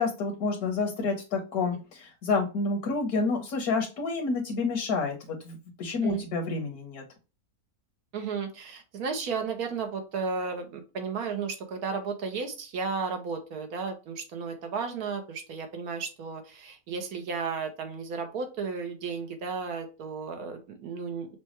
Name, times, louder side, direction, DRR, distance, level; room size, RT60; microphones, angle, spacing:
voice 1, 0.0-7.0, left 4 dB, 75° left, 2 dB, 1.3 m, -29 dB
voice 2, 8.1-21.3, right 5 dB, 80° right, 5 dB, 1.3 m, -34 dB
5.9 x 2.3 x 2.9 m, 0.32 s
omnidirectional pair, 1.6 m